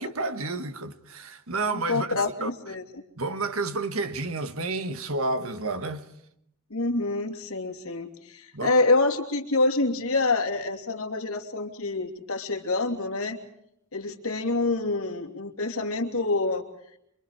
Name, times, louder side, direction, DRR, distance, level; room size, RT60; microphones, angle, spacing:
voice 1, 0.0-2.5 3.2-6.1 8.5-8.8, right 3 dB, 75° right, 1.6 m, -30 dB
voice 2, 1.7-3.0 6.7-13.4 13.9-16.7, left 3 dB, 75° left, 3.0 m, -27 dB
27.5 x 24.0 x 4.9 m
head